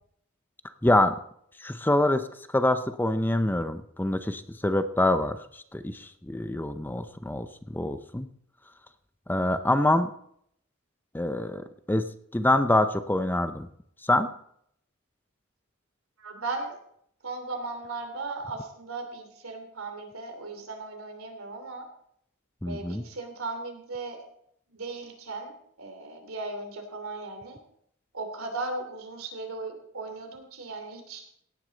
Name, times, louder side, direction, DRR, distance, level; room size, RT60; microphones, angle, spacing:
voice 1, 0.8-1.2 1.6-2.3 2.5-5.4 5.7-8.3 9.3-10.1 11.1-13.7 14.1-14.3 22.6-23.0, left 1 dB, 10° left, 10 dB, 0.6 m, -25 dB
voice 2, 16.2-16.8 17.2-21.9 22.7-24.2 24.7-27.6 28.1-31.2, right 3 dB, 85° right, 5 dB, 2.9 m, -37 dB
17.0 x 9.7 x 4.0 m, 0.69 s
head